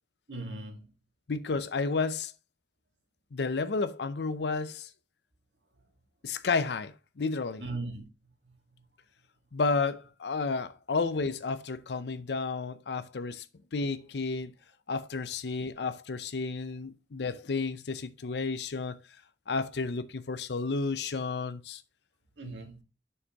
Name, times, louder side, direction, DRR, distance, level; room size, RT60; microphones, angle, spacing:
voice 1, 0.3-0.9 7.6-8.1 8.4-8.6 17.2-17.3 18.2-18.4 22.4-22.8, right 2 dB, 85° right, 1.8 m, -39 dB
voice 2, 1.3-2.3 3.3-4.9 6.2-7.6 9.5-13.4 13.7-14.5 14.9-19.0 19.5-21.8, left 4 dB, 65° left, 0.6 m, -31 dB
7.1 x 6.6 x 2.9 m
head